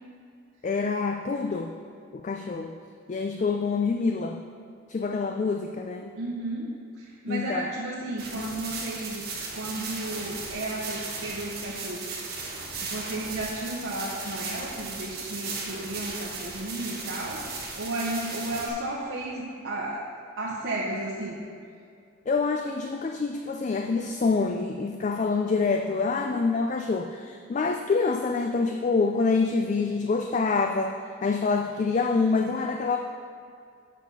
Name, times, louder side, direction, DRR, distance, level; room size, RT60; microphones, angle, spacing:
voice 1, 0.6-1.7 2.2-2.7 3.1-4.4 4.9-6.1 7.3-7.7 22.3-33.0, left 4 dB, 35° left, 4 dB, 0.3 m, -26 dB
voice 2, 6.2-9.3 9.5-12.3 12.8-20.1 20.4-21.4, right 1 dB, 70° right, -5 dB, 0.9 m, -33 dB
sound 1, 8.2-18.7, right 4 dB, 50° right, 1.3 m, -36 dB
7.4 x 5.7 x 5.5 m, 2.3 s
head